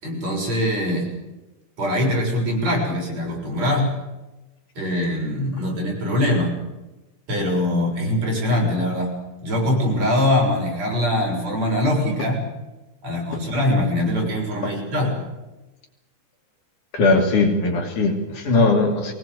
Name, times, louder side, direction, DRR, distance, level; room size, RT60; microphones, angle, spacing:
voice 1, 0.0-1.1 1.8-3.9 4.8-6.5 7.3-9.1 9.4-12.4 13.0-15.1, left 1 dB, 45° right, 0 dB, 7.9 m, -22 dB
voice 2, 16.9-19.1, left 3 dB, 55° left, 2 dB, 4.1 m, -19 dB
23.0 x 19.5 x 8.1 m, 1.0 s
omnidirectional pair, 4.3 m